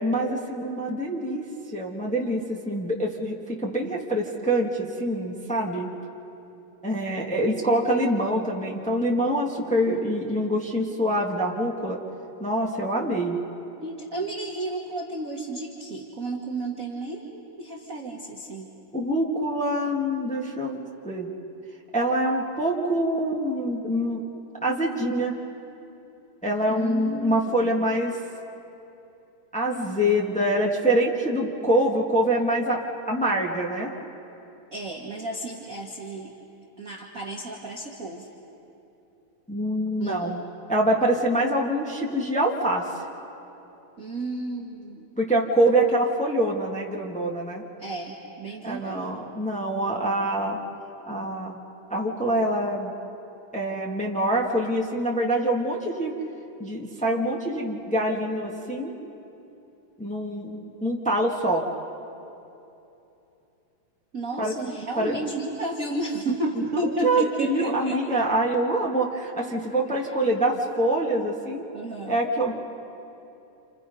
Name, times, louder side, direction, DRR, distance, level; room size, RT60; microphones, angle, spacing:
voice 1, 0.0-1.4 1.7-3.4 3.6-5.9 6.8-12.0 12.4-13.4 18.9-21.3 21.9-24.2 24.6-25.3 26.4-28.1 29.5-32.8 33.1-33.9 39.5-40.4 40.7-42.8 45.2-47.6 48.6-50.6 51.1-51.6 51.9-52.9 53.5-56.1 56.6-58.9 60.0-61.6 64.4-64.5 65.0-65.2 66.7-71.6 72.1-72.5, right 1 dB, 10° left, -3 dB, 0.3 m, -25 dB
voice 2, 13.8-18.7 26.7-27.8 34.7-36.3 36.8-38.3 40.0-40.3 44.0-45.1 47.8-49.1 64.1-68.0 70.0-70.1 71.7-72.2, right 2 dB, 35° right, -1 dB, 1.3 m, -32 dB
29.0 x 28.5 x 5.4 m, 2.9 s
omnidirectional pair, 4.0 m